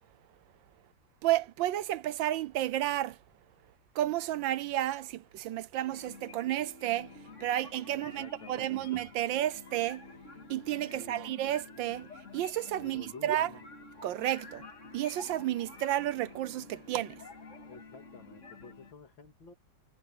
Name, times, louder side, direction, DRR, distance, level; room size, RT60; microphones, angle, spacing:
voice 1, 1.2-3.2 3.9-7.1 7.4-10.0 10.5-12.1 12.3-13.5 14.0-14.6 14.9-17.2, right 13 dB, 80° right, 1.4 m, -31 dB
sound 1, 5.9-18.9, left 3 dB, 40° left, 2.3 m, -50 dB
voice 2, 7.9-8.9 10.9-11.3 12.8-13.7 17.6-19.5, left 4 dB, 85° left, 3.3 m, -51 dB
omnidirectional pair, 2.0 m